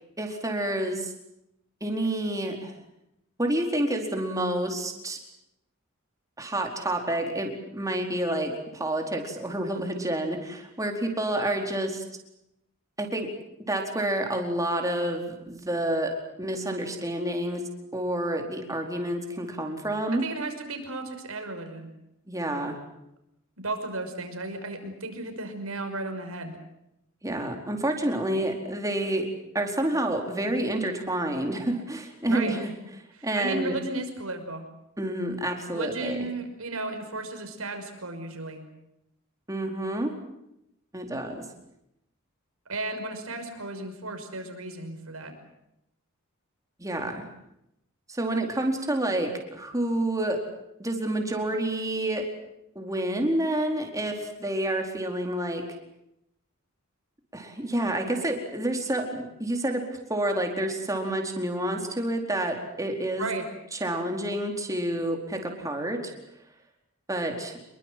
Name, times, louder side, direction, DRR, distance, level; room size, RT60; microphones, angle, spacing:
voice 1, 0.2-1.1 1.8-2.7 3.4-5.2 6.4-12.0 13.0-13.3 13.7-16.1 16.4-17.6 17.9-20.3 22.3-22.8 27.2-29.3 29.5-32.7 33.2-33.8 35.0-36.3 39.5-40.1 40.9-41.4 46.8-47.3 48.1-50.4 50.8-52.2 52.7-55.6 57.3-59.8 60.1-63.3 63.7-66.0 67.1-67.6, right 1 dB, 15° right, 2 dB, 4.5 m, -29 dB
voice 2, 20.1-21.9 23.6-26.5 32.3-32.5 33.2-34.7 35.7-38.6 42.7-45.3 63.2-63.4, right 2 dB, 90° right, 6 dB, 5.8 m, -34 dB
27.0 x 22.5 x 7.8 m, 0.83 s
head